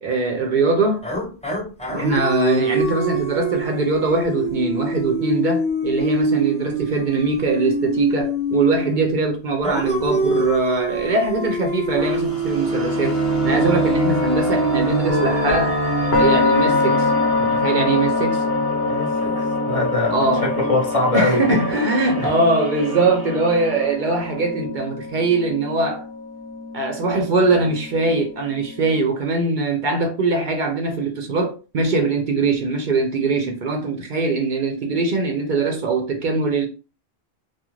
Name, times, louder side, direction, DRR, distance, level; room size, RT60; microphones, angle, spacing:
voice 1, 0.0-1.0 1.9-13.2 13.4-15.8 16.2-17.1 17.4-18.4 20.1-20.5 21.1-26.0 26.7-36.7, right 3 dB, 60° right, 0.6 m, -21 dB
sound 1, 1.0-9.1 9.6-17.7, right 2 dB, 10° left, 0.4 m, -25 dB
sound 2, 12.0-23.9, right 1 dB, 20° right, 1.0 m, -28 dB
sound 3, 15.1-29.0, left 4 dB, 85° left, 1.0 m, -25 dB
voice 2, 18.9-21.6 22.2-22.3, left 2 dB, 40° left, 0.7 m, -23 dB
2.4 x 2.3 x 2.9 m
omnidirectional pair, 1.0 m